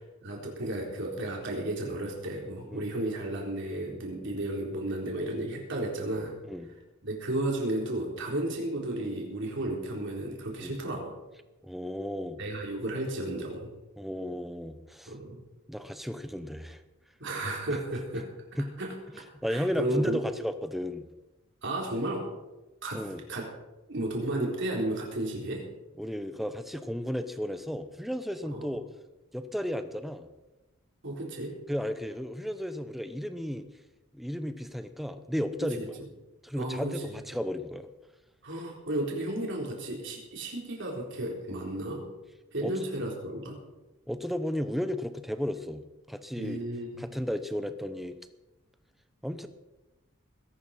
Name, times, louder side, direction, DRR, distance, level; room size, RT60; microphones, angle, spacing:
voice 1, 0.2-6.3 7.0-11.1 12.4-13.7 15.1-15.4 17.2-18.3 18.8-18.9 19.5-20.2 21.6-22.3 22.8-23.5 23.9-25.6 28.5-28.7 31.0-31.6 35.8-35.9 36.6-37.2 38.4-42.0 42.5-43.6 46.4-47.2, right 1 dB, 60° right, 0 dB, 3.8 m, -33 dB
voice 2, 11.6-12.4 14.0-15.2 15.7-16.8 18.6-18.7 19.1-21.0 22.9-23.2 26.0-28.8 29.3-30.3 31.7-33.7 34.1-35.9 36.4-37.9 42.6-42.9 44.1-46.6 47.0-48.2 49.2-49.5, equal, ahead, 9 dB, 0.9 m, -34 dB
21.0 x 11.0 x 4.3 m, 1.1 s
head